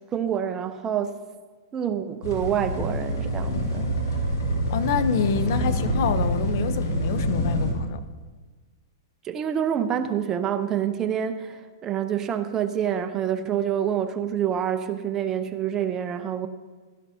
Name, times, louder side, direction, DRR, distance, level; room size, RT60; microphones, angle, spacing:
voice 1, 0.1-1.2 1.7-3.9 5.6-5.7 9.2-16.5, right 9 dB, 25° right, 0.7 m, -27 dB
sound 1, 2.2-7.7, right 1 dB, 85° left, 2.9 m, -26 dB
voice 2, 4.7-8.0, left 7 dB, 60° left, 0.8 m, -27 dB
16.0 x 12.0 x 2.8 m
hypercardioid pair, 130°, 2 cm